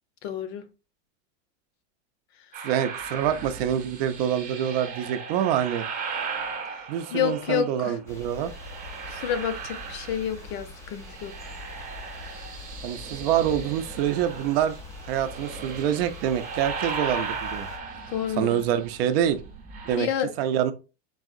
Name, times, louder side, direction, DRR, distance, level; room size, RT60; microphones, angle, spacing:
voice 1, 0.2-0.6 6.7-6.8 7.1-7.9 9.0-11.3 18.1-18.6 20.0-20.3, left 9 dB, 55° left, 0.8 m, -29 dB
sound 1, 2.5-7.9 8.4-10.6 10.9-20.0, right 5 dB, 20° right, 0.8 m, -37 dB
voice 2, 2.6-5.8 6.9-8.5 12.8-14.8 15.1-17.7 18.4-19.4 19.9-20.1 20.4-20.7, right 10 dB, 50° right, 0.5 m, -26 dB
sound 2, 8.1-17.8, left 2 dB, 10° left, 0.4 m, -43 dB
4.0 x 3.6 x 2.5 m
supercardioid pair, 155°, 38 cm